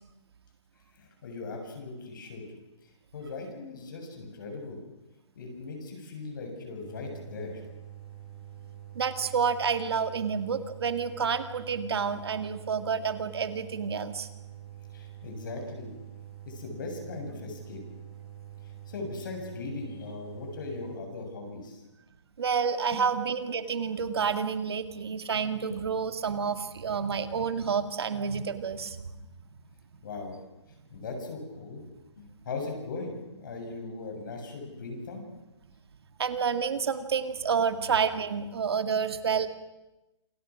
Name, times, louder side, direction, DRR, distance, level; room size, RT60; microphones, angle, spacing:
voice 1, 1.0-2.5 3.1-4.8 5.4-7.6 14.9-15.9 16.4-17.8 18.6-21.8 22.9-23.0 25.7-25.8 30.0-30.4 30.9-31.8 32.2-35.3, left 3 dB, 45° left, 3 dB, 7.3 m, -39 dB
sound 1, 6.8-21.0, right 12 dB, 5° right, 5.5 m, -46 dB
voice 2, 9.0-14.3 22.4-29.0 36.2-39.5, right 6 dB, 60° right, 10 dB, 2.0 m, -29 dB
28.0 x 25.5 x 6.3 m, 0.99 s
hypercardioid pair, 170°, 15 cm